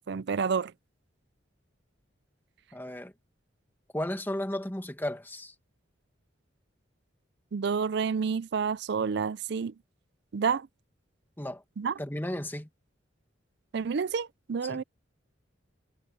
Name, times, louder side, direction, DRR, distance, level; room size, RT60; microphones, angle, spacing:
voice 1, 0.1-0.7 7.5-9.7 10.3-10.7 11.8-11.9 13.7-14.8, right 6 dB, 60° right, 0.4 m, -29 dB
voice 2, 2.7-3.1 3.9-5.5 11.4-11.6 12.0-12.7 14.6-14.8, left 1 dB, 10° left, 1.9 m, -34 dB
head